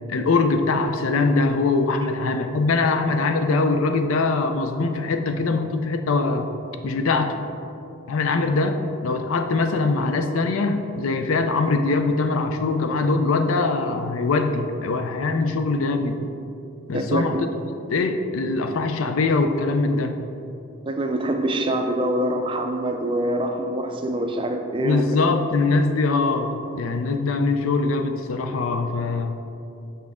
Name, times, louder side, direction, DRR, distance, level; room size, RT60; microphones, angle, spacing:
voice 1, 0.1-6.5 6.8-7.4 8.1-16.2 16.9-17.5 17.9-20.2 24.8-29.3, left 3 dB, 85° left, 7 dB, 0.5 m, -22 dB
voice 2, 16.9-17.4 20.9-25.3, right 1 dB, 25° right, 4 dB, 0.4 m, -25 dB
6.3 x 5.6 x 3.6 m, 2.8 s
head